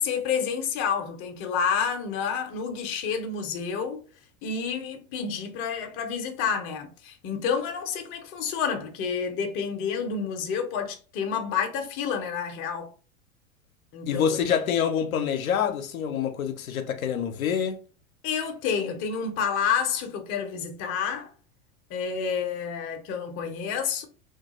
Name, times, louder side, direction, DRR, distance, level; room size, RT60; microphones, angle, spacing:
voice 1, 0.0-4.0 4.4-12.9 13.9-14.2 18.2-21.3 21.9-24.1, left 6 dB, 30° left, 0.5 m, -29 dB
voice 2, 14.1-17.8, left 8 dB, 80° left, 0.5 m, -26 dB
2.3 x 2.2 x 2.9 m
figure-of-eight pair, 85°, 42 cm